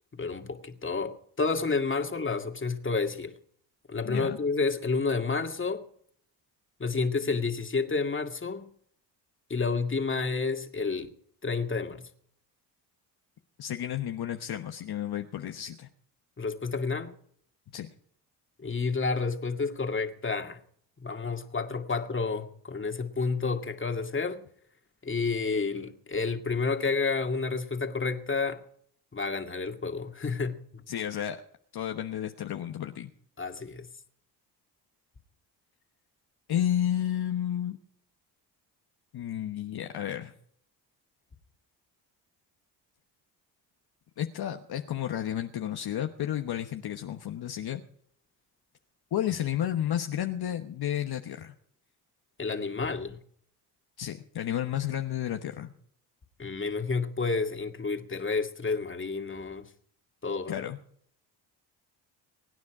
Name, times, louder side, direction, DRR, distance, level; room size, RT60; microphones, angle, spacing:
voice 1, 0.1-3.3 3.9-5.8 6.8-8.7 9.5-11.1 11.4-12.1 16.4-17.1 18.6-20.6 21.0-24.4 25.0-28.6 29.1-30.8 33.4-33.9 52.4-53.2 56.4-59.6 60.2-60.6, left 4 dB, 25° left, 2.2 m, -30 dB
voice 2, 4.0-4.4 13.6-15.9 17.7-17.9 30.9-31.4 31.7-33.1 36.5-37.8 39.1-40.3 44.2-47.8 49.1-51.5 54.0-55.7 60.5-60.8, left 11 dB, 55° left, 1.2 m, -32 dB
24.0 x 9.7 x 4.9 m
supercardioid pair, 65°, 46 cm